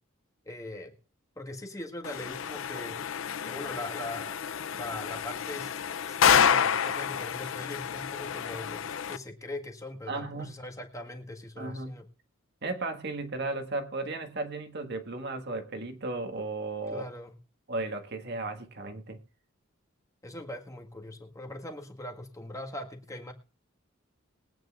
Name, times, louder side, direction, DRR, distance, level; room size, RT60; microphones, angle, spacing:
voice 1, 0.4-0.9 1.3-3.0 3.4-4.4 4.7-12.0 16.9-17.3 20.2-23.3, left 1 dB, 15° left, 1.6 m, -41 dB
sound 1, 2.0-9.2, left 7 dB, 75° left, 0.5 m, -29 dB
voice 2, 10.1-10.5 11.6-11.9 12.6-17.0 17.7-19.2, right 3 dB, 55° right, 1.7 m, -35 dB
21.5 x 9.2 x 2.5 m
head